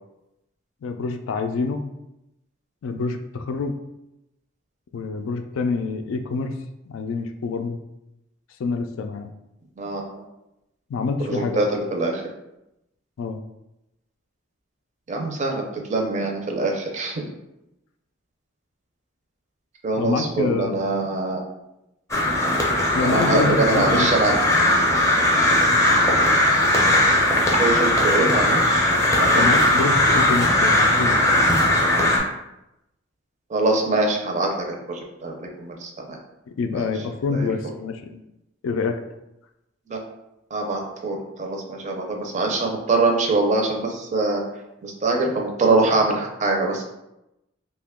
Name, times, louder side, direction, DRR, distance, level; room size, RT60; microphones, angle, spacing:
voice 1, 0.8-1.9 2.8-3.7 4.9-6.5 6.9-7.8 8.6-9.3 10.9-11.6 13.2-13.4 19.9-20.8 22.9-24.1 24.8-24.9 29.3-31.4 36.6-38.2 38.6-39.0, left 4 dB, 85° left, 7 dB, 0.3 m, -26 dB
voice 2, 9.8-10.2 11.3-12.2 15.1-17.2 19.8-21.4 23.0-24.5 27.6-28.9 29.2-29.4 33.5-36.2 36.7-36.9 37.3-37.5 39.9-40.0 40.5-44.4 44.8-46.8, right 3 dB, 35° right, 1 dB, 0.5 m, -24 dB
Crow, 22.1-32.2, left 1 dB, 15° left, 0.5 m, -19 dB
2.8 x 2.2 x 3.5 m, 0.90 s
head